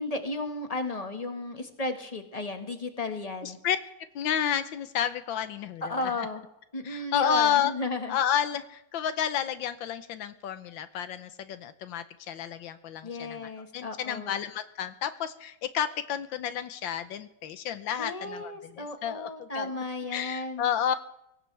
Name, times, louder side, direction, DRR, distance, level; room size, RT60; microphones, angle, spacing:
voice 1, 0.0-3.6 5.8-6.4 6.7-8.2 13.0-14.4 18.0-20.6, left 2 dB, 20° left, 5 dB, 1.6 m, -34 dB
voice 2, 3.4-3.8 4.2-6.1 6.8-7.7 8.1-19.7 20.1-21.1, left 9 dB, 90° left, 11 dB, 1.7 m, -31 dB
23.5 x 17.5 x 3.4 m, 0.84 s
omnidirectional pair, 2.0 m